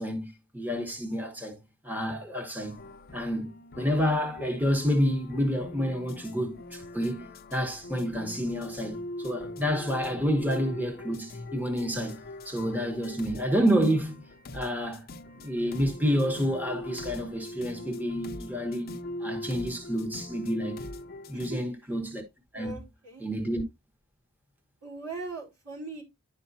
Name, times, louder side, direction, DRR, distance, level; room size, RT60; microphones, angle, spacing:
voice 1, 0.0-1.6 1.8-2.8 3.1-14.2 14.5-15.0 15.4-20.8 21.3-22.2 22.5-22.8 23.2-23.6, equal, 10° right, 1.2 m, -29 dB
sound 1, 2.6-21.5, left 1 dB, 45° left, 0.6 m, -41 dB
voice 2, 22.5-23.3 24.8-26.0, right 3 dB, 90° right, 4.4 m, -39 dB
11.0 x 4.8 x 2.8 m
head